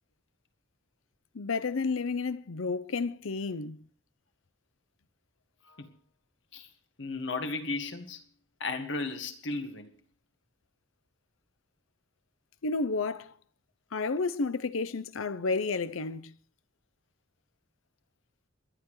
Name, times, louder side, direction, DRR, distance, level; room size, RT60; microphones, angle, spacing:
voice 1, 1.3-3.8 12.6-13.3 13.9-16.2, left 4 dB, 90° left, 0.7 m, -31 dB
voice 2, 7.0-8.2 8.6-9.9, left 3 dB, 65° left, 1.8 m, -35 dB
28.0 x 11.5 x 3.2 m
head